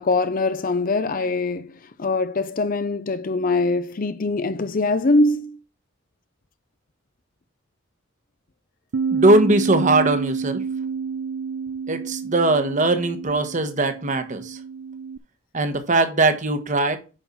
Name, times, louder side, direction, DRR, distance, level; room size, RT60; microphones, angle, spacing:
voice 1, 0.0-5.6, left 2 dB, 40° left, 0.5 m, -23 dB
Bass guitar, 8.9-15.2, right 6 dB, 70° right, 0.4 m, -29 dB
voice 2, 9.1-10.6 11.9-14.6 15.5-17.0, right 2 dB, 35° right, 1.2 m, -20 dB
8.9 x 5.7 x 4.1 m
head